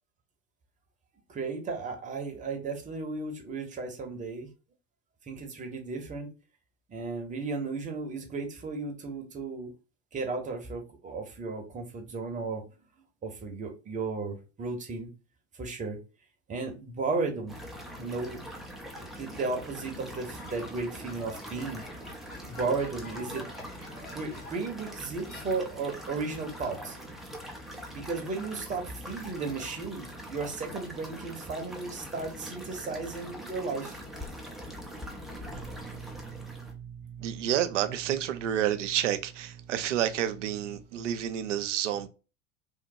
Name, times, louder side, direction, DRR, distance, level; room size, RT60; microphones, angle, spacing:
voice 1, 1.3-4.5 5.2-6.3 6.9-9.7 10.1-12.6 13.2-15.1 15.6-16.0 16.5-17.6 18.0-18.4 18.9-21.8 22.4-23.5 24.1-27.0 27.9-34.0, right 4 dB, 20° right, 0.8 m, -34 dB
sound 1, 17.5-36.7, equal, ahead, 0.4 m, -43 dB
sound 2, 20.4-24.8 25.3-26.0, left 2 dB, 20° left, 0.9 m, -50 dB
voice 2, 35.5-42.1, right 11 dB, 65° right, 0.5 m, -30 dB
3.1 x 2.1 x 2.6 m
figure-of-eight pair, 80°, 40 cm